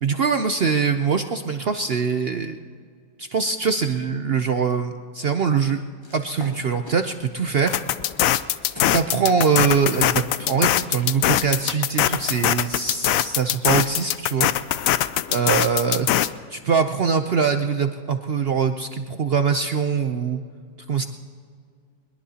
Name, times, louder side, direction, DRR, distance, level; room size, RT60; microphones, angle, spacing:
voice 1, 0.0-2.6 3.2-5.8 6.1-7.8 8.9-15.0 15.3-16.1 16.5-20.4 20.9-21.1, right 6 dB, 70° right, 7 dB, 0.5 m, -23 dB
sound 1, 6.0-9.0 9.3-11.7, left 2 dB, 25° left, 0.6 m, -43 dB
sound 2, 7.7-16.3, left 12 dB, 70° left, 0.8 m, -22 dB
22.5 x 21.5 x 2.8 m, 2.1 s
omnidirectional pair, 1.8 m